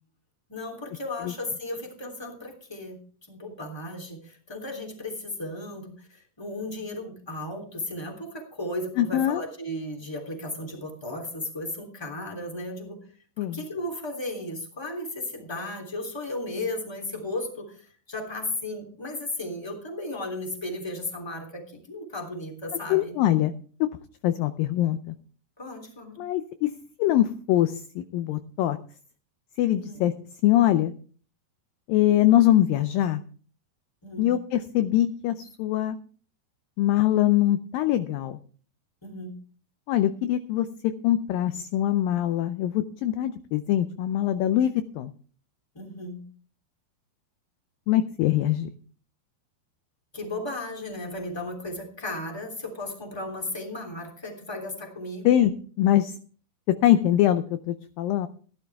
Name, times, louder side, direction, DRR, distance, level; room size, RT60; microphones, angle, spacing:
voice 1, 0.5-3.0 3.3-13.0 13.4-23.1 25.6-26.2 29.8-30.0 34.0-34.3 39.0-39.3 45.7-46.2 50.1-55.3, left 1 dB, 5° left, 1 dB, 2.7 m, -35 dB
voice 2, 9.0-9.4 13.4-13.6 22.9-23.5 24.2-25.1 26.2-26.7 27.0-28.8 29.6-30.1 30.4-30.9 31.9-33.2 34.2-36.0 36.8-38.4 39.9-40.7 41.0-45.1 47.9-48.7 55.3-56.1 56.8-58.3, left 12 dB, 80° left, 10 dB, 2.2 m, -23 dB
16.5 x 11.5 x 3.5 m, 0.42 s
omnidirectional pair, 4.5 m